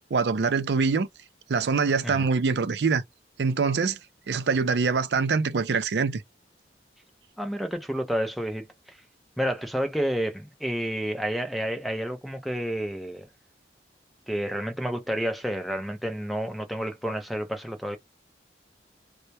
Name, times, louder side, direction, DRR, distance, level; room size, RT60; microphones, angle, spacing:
voice 1, 0.1-1.1 1.5-3.0 3.4-4.0 4.3-6.2, right 5 dB, 75° right, 0.4 m, -24 dB
voice 2, 7.4-9.0 9.4-13.3 14.3-18.0, equal, ahead, 0.5 m, -30 dB
2.2 x 2.1 x 2.7 m
head